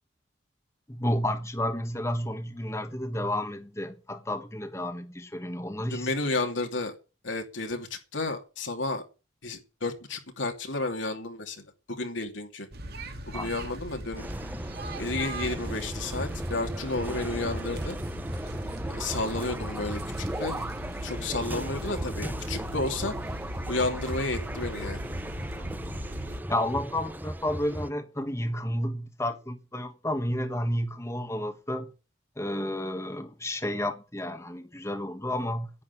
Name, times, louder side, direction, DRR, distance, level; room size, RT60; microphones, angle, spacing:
voice 1, 0.9-6.1 13.3-13.5 25.6-25.9 26.5-31.9 32.4-35.7, left 1 dB, 15° left, 1.5 m, -31 dB
voice 2, 5.9-6.9 7.2-9.0 9.4-12.7 13.3-14.3 15.0-18.0 18.9-20.7 21.0-23.1 23.7-25.0, left 2 dB, 75° left, 2.8 m, -32 dB
sound 1, 12.7-26.4, right 1 dB, 55° right, 2.4 m, -39 dB
sound 2, 14.2-27.9, right 1 dB, 10° right, 0.7 m, -36 dB
10.5 x 9.1 x 9.8 m
head